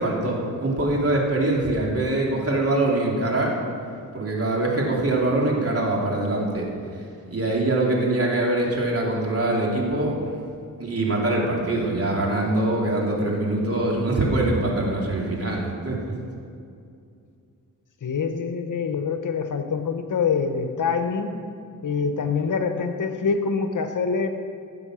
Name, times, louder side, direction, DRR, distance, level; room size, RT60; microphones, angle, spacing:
voice 1, 0.0-3.5 4.1-6.7 7.3-10.1 10.8-16.1, right 2 dB, 40° right, -2 dB, 3.0 m, -23 dB
voice 2, 18.0-21.4 21.8-24.3, left 5 dB, 60° left, 7 dB, 1.1 m, -25 dB
16.0 x 7.6 x 6.3 m, 2.4 s
cardioid pair, 70°, 35 cm